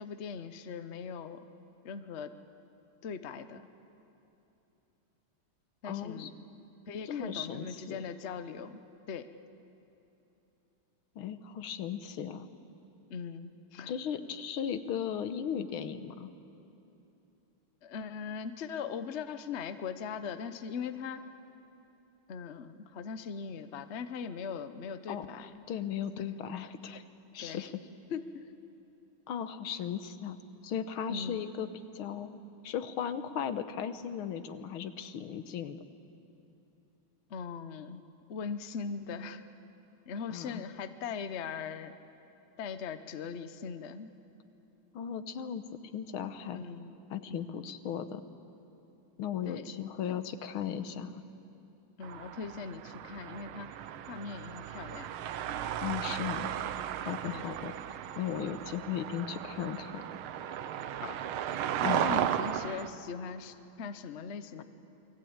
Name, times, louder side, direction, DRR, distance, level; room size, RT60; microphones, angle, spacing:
voice 1, 0.0-1.4 1.8-2.3 3.0-3.6 5.8-6.3 6.9-8.8 9.1-9.3 13.1-13.9 17.8-21.2 22.3-25.5 27.4-27.7 28.1-28.4 31.1-31.4 37.3-38.0 38.3-39.4 40.1-41.9 42.6-44.1 46.5-46.9 47.3-47.5 49.4-49.7 52.0-53.8 54.1-55.1 57.2-57.5 61.0-61.2 61.8-64.6, left 6 dB, 50° left, 10 dB, 0.9 m, -40 dB
voice 2, 5.8-6.3 7.1-8.0 11.2-12.5 13.9-16.3 25.1-27.0 27.3-27.7 29.3-30.4 30.6-31.7 31.9-32.4 32.6-35.8 40.3-40.6 44.9-45.6 45.9-46.6 47.1-48.2 49.2-51.2 55.8-56.5 57.0-57.7 58.2-60.0 61.8-62.1, left 8 dB, 85° left, 10 dB, 1.9 m, -36 dB
sound 1, 52.0-62.9, right 10 dB, 90° right, 1.7 m, -35 dB
28.5 x 21.5 x 8.8 m, 2.9 s
omnidirectional pair, 2.2 m